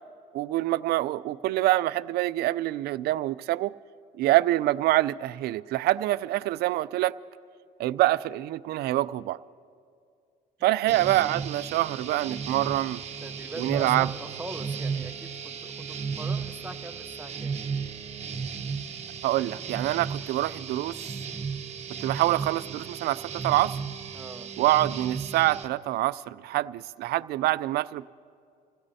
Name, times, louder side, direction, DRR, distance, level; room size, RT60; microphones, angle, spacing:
voice 1, 0.3-3.7 4.2-7.2 7.8-9.4 10.6-13.0 13.6-14.1 19.2-21.2 22.0-23.8 24.6-28.1, right 16 dB, 70° right, 0.4 m, -26 dB
voice 2, 10.8-11.2 13.2-17.6 24.1-24.5, right 2 dB, 10° right, 0.9 m, -41 dB
sound 1, 10.9-25.7, right 6 dB, 40° right, 1.1 m, -35 dB
28.5 x 16.0 x 2.8 m
cardioid pair, 110°, 17 cm